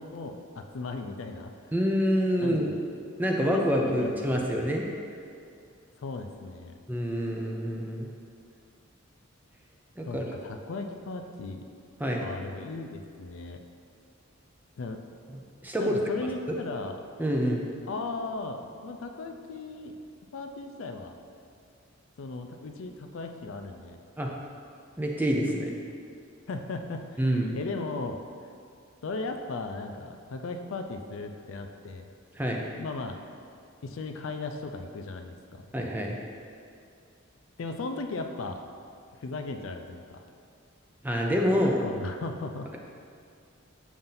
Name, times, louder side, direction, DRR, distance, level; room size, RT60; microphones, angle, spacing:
voice 1, 0.0-1.5 2.4-2.7 3.4-4.7 6.0-6.8 10.0-11.6 12.2-13.6 14.8-15.0 15.8-17.0 17.9-19.9 20.3-21.2 22.2-24.0 26.5-27.2 27.5-28.5 29.0-32.1 32.8-33.2 33.8-35.6 37.6-38.6 39.2-40.2 41.8-42.7, left 3 dB, 70° left, 5 dB, 0.4 m, -37 dB
voice 2, 1.7-2.7 3.2-4.9 6.9-8.1 10.0-10.2 12.0-12.2 15.6-16.0 17.2-17.7 24.2-24.3 25.0-25.7 27.2-27.6 32.4-32.6 35.7-36.2 41.0-41.8, equal, 10° right, 0 dB, 0.4 m, -26 dB
7.1 x 2.6 x 5.5 m, 2.4 s
head